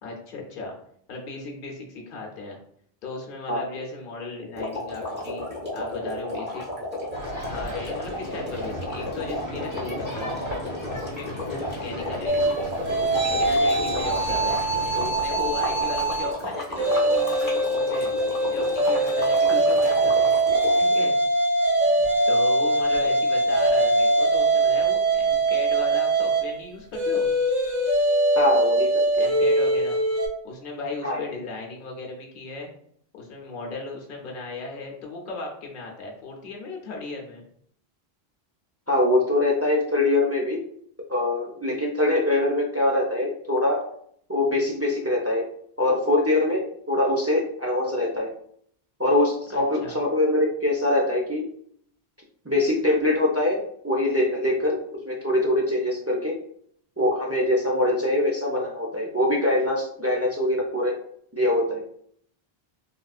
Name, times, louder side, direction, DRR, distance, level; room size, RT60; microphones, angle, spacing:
voice 1, 0.0-0.7 1.1-2.6 3.0-5.5 5.7-6.6 7.2-10.4 10.9-12.7 13.3-14.6 14.9-18.1 18.5-20.3 20.7-21.2 21.8-27.3 29.1-30.0 30.4-32.7 33.1-37.4 49.5-50.0, left 3 dB, 60° left, -1 dB, 0.9 m, -36 dB
sound 1, 4.5-21.0, left 1 dB, 10° right, 1.0 m, -33 dB
sound 2, 7.1-15.1, equal, 30° left, 0.9 m, -37 dB
sound 3, 12.3-16.3 16.7-30.3, right 2 dB, 45° right, 0.8 m, -22 dB
voice 2, 28.4-29.3 31.0-31.2 38.9-40.6 41.1-43.9 44.3-45.5 45.8-48.3 49.0-51.4 52.4-56.4 57.0-61.0 61.3-61.8, left 1 dB, 25° right, -2 dB, 0.3 m, -23 dB
3.6 x 2.5 x 2.3 m, 0.64 s
omnidirectional pair, 1.1 m